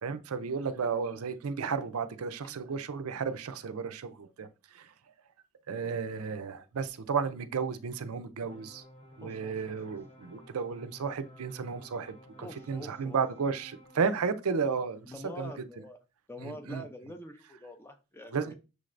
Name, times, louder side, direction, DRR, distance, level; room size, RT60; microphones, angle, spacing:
voice 1, 0.0-4.5 4.7-4.9 5.7-8.8 9.2-15.5 16.4-16.8 18.3-18.5, right 5 dB, 75° right, 0.5 m, -33 dB
sound 1, 8.4-14.3, left 1 dB, 25° left, 0.8 m, -54 dB
voice 2, 9.2-9.8 12.4-13.2 15.0-16.0 16.3-18.5, left 1 dB, 10° left, 0.4 m, -45 dB
6.3 x 3.2 x 2.5 m
head